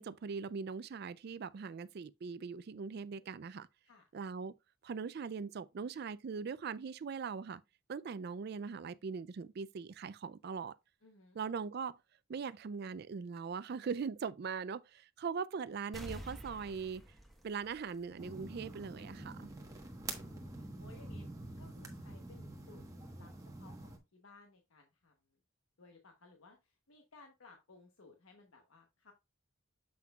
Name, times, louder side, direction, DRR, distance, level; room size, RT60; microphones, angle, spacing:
voice 1, 0.0-3.7 4.1-4.5 4.8-7.6 7.9-10.8 11.3-12.0 12.3-17.0 17.4-19.5, right 5 dB, 50° right, 0.3 m, -41 dB
voice 2, 11.0-11.4 19.0-21.3 21.6-22.8 23.2-25.1 25.8-29.1, left 3 dB, 85° left, 1.0 m, -61 dB
sound 1, 15.9-18.5 18.9-19.0, equal, ahead, 1.2 m, -49 dB
sound 2, 18.2-24.0, right 2 dB, 15° right, 1.2 m, -47 dB
7.6 x 5.7 x 2.3 m
head